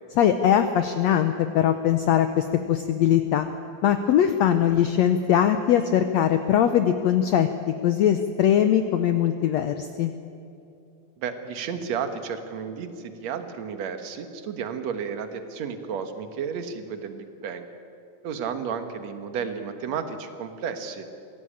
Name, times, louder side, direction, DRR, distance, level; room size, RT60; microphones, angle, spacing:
voice 1, 0.2-3.5 3.8-7.5 7.8-10.1, left 10 dB, 90° left, 9 dB, 1.5 m, -21 dB
voice 2, 11.2-17.7 18.2-21.1, right 6 dB, 60° right, 8 dB, 2.2 m, -32 dB
23.5 x 17.0 x 8.8 m, 2.6 s
omnidirectional pair, 4.1 m